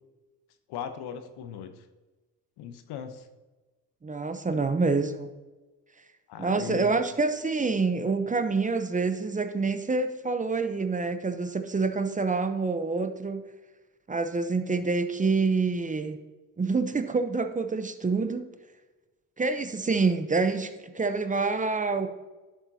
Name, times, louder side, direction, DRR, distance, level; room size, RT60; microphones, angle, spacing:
voice 1, 0.7-1.8 2.6-3.3 4.6-4.7 6.3-6.9, left 8 dB, 75° left, 8 dB, 1.0 m, -38 dB
voice 2, 4.0-5.3 6.4-13.4 14.1-16.2 16.6-18.4 19.4-22.1, right 4 dB, 20° right, 9 dB, 0.7 m, -27 dB
11.0 x 7.1 x 2.8 m, 1.2 s
supercardioid pair, 75°, 39 cm